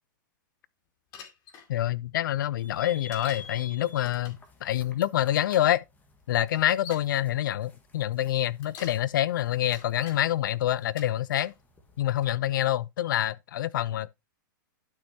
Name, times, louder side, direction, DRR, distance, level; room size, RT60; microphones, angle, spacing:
Bicycle, 1.1-1.7 3.1-3.5 4.0-4.5 5.6-5.7 6.4-7.1 8.4-9.0 9.5-10.2 10.8-11.5 12.2-12.6, left 6 dB, 35° left, 2.4 m, -46 dB
voice 1, 1.7-5.8 6.3-11.5 12.0-14.1, left 12 dB, 75° left, 0.6 m, -27 dB
sound 1, 2.6-12.0, left 4 dB, 15° left, 1.6 m, -51 dB
11.5 x 6.3 x 2.8 m
hypercardioid pair, 140°, 11 cm